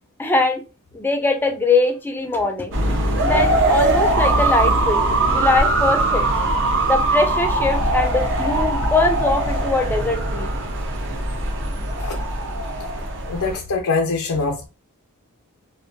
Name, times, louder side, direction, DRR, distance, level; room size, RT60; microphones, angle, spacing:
voice 1, 0.2-0.6 0.9-2.7 3.2-5.0 5.3-6.3 6.9-10.5, left 3 dB, 10° left, 0.4 m, -21 dB
sound 1, 2.7-13.6, right 2 dB, 60° right, 0.5 m, -21 dB
voice 2, 13.2-14.7, left 4 dB, 85° left, 0.5 m, -23 dB
2.6 x 2.1 x 2.5 m
head